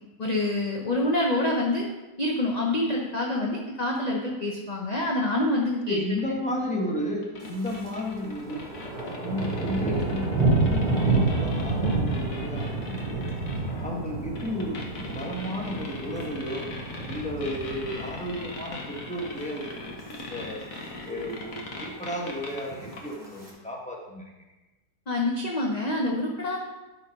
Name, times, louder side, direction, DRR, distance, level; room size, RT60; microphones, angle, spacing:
voice 1, 0.2-1.9 2.2-6.0 25.1-26.6, left 1 dB, 30° left, -1 dB, 0.8 m, -26 dB
sound 1, 5.9-22.6 22.9-23.0 23.5-23.6, left 3 dB, 50° left, 1.7 m, -40 dB
voice 2, 5.9-8.7 9.2-13.3 13.8-16.7 17.1-19.8 20.1-20.6 21.1-24.3, left 1 dB, 5° left, -2 dB, 1.3 m, -33 dB
Thunder, 7.4-7.9 8.2-18.6 19.0-19.3 19.8-20.2 20.5-20.6 20.7-20.8 21.2-21.8 22.6-23.5, right 3 dB, 25° right, 2.5 m, -29 dB
12.0 x 4.6 x 5.3 m, 1.1 s
omnidirectional pair, 1.9 m